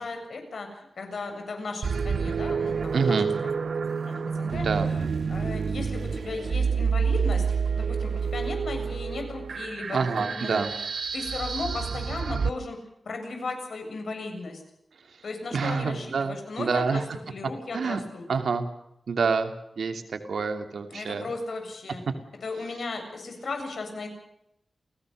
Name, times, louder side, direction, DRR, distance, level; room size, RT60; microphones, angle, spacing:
voice 1, 0.0-3.2 4.1-7.4 7.7-10.7 11.1-12.8 13.0-14.6 15.2-18.3 20.9-22.0 22.4-24.1, left 3 dB, 70° left, 5 dB, 7.5 m, -36 dB
sound 1, 1.8-12.5, right 5 dB, 65° right, 0.9 m, -28 dB
voice 2, 2.9-3.3 4.5-4.9 9.9-10.7 15.5-17.0 17.7-18.0 18.3-18.7 19.1-21.3, right 5 dB, 90° right, 6 dB, 2.8 m, -27 dB
29.5 x 18.5 x 6.7 m, 0.81 s
wide cardioid pair, 160°, 0 cm